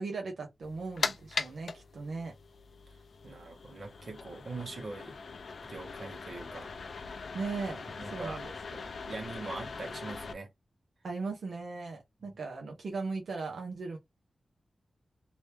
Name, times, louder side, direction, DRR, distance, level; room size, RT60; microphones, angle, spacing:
voice 1, 0.0-2.3 7.3-8.8 11.0-14.0, right 4 dB, 75° right, 1.0 m, -38 dB
sound 1, 0.6-10.3, left 4 dB, 60° left, 0.4 m, -40 dB
voice 2, 3.2-5.2 5.6-6.7 8.0-8.4 9.0-10.5, right 3 dB, 50° right, 1.4 m, -42 dB
3.1 x 2.9 x 3.3 m
wide cardioid pair, 170°, 0 cm